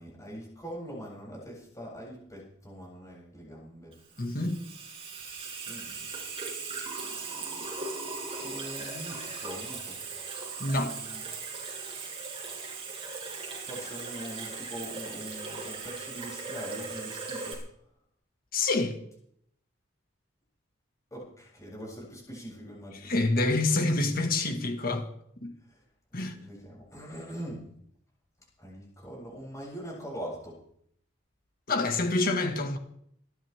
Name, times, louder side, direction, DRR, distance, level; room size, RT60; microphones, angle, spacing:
voice 1, 0.0-3.9 5.6-6.1 8.4-10.0 10.7-11.2 13.5-17.6 21.1-23.1 25.7-25.8 26.1-27.7 28.6-30.6, equal, 15° left, 7.9 m, -42 dB
Water tap faucet / Sink (filling or washing), 3.9-17.5, right 4 dB, 30° right, 6.5 m, -38 dB
voice 2, 4.2-4.6 10.6-10.9 18.5-19.0 22.9-25.1 25.4-25.5 26.1-26.3 31.7-32.8, left 2 dB, 45° left, 1.9 m, -27 dB
27.0 x 12.5 x 3.7 m
head